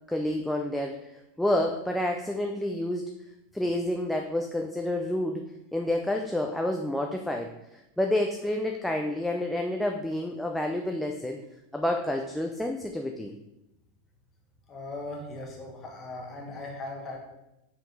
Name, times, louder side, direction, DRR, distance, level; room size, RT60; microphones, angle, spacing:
voice 1, 0.1-1.1 1.4-3.0 3.5-5.5 5.7-11.4 11.7-13.3, left 1 dB, ahead, 2 dB, 0.4 m, -29 dB
voice 2, 14.7-17.2, left 2 dB, 20° left, -1 dB, 1.4 m, -38 dB
5.7 x 4.8 x 5.3 m, 0.90 s
supercardioid pair, 170°, 0 cm